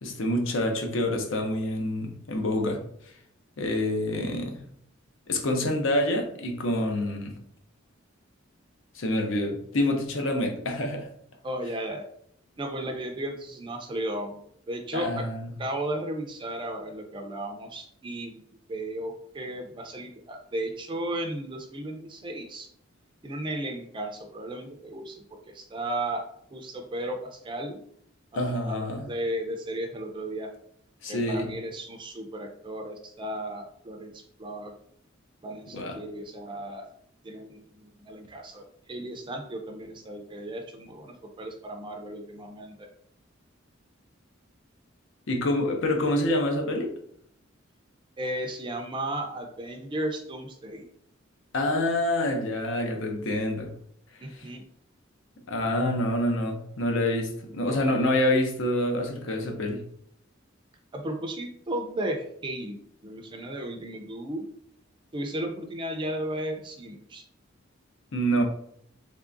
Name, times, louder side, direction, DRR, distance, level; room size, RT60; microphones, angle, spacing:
voice 1, 0.0-2.8 3.6-4.7 5.3-7.3 8.9-11.1 14.9-15.5 28.3-29.1 31.0-31.5 35.7-36.0 45.3-46.9 51.5-53.7 54.3-54.5 55.5-59.8 68.1-68.4, left 1 dB, 70° left, 0.6 m, -27 dB
voice 2, 11.4-12.0 12.6-14.4 14.7-15.3 15.6-18.4 18.7-22.7 23.2-25.2 25.5-26.2 26.5-27.8 28.3-30.5 31.1-34.7 35.4-36.9 37.2-42.9 48.2-50.9 54.2-54.6 60.9-64.4 65.1-67.2, right 1 dB, 25° right, 0.4 m, -35 dB
3.6 x 3.3 x 2.5 m
head